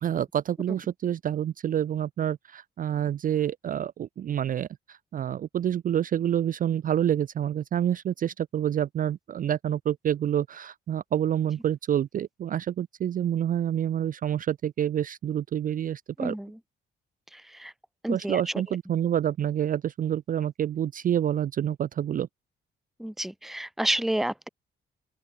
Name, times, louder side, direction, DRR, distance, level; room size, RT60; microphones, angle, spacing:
voice 1, 0.0-16.3 18.1-22.3, right 10 dB, 45° right, 0.4 m, -28 dB
voice 2, 16.2-16.6 17.3-17.7 18.0-18.5 23.0-24.5, right 1 dB, ahead, 0.6 m, -30 dB
open air
cardioid pair, 90°, 20 cm